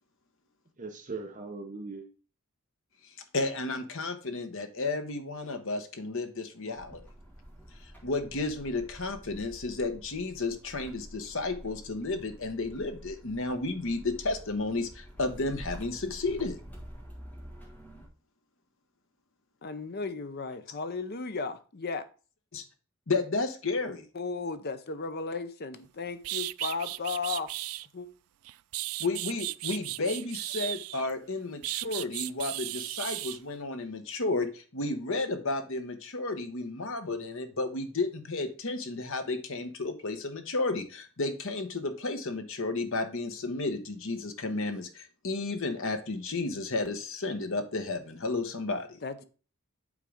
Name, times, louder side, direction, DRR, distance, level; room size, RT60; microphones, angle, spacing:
voice 1, 0.8-2.1, right 3 dB, 35° right, 0.8 m, -39 dB
voice 2, 3.3-7.0 8.0-16.6 22.5-22.6 23.1-24.0 29.0-49.0, left 3 dB, 60° left, 1.0 m, -32 dB
sound 1, 6.8-18.1, equal, 10° left, 1.5 m, -48 dB
voice 3, 19.6-22.1 24.1-27.5 27.9-28.1 49.0-49.2, left 4 dB, 45° left, 0.6 m, -35 dB
sound 2, 25.8-25.9 26.2-27.9 28.4-31.1 31.6-33.4, right 18 dB, 75° right, 0.3 m, -35 dB
8.4 x 3.8 x 4.9 m
head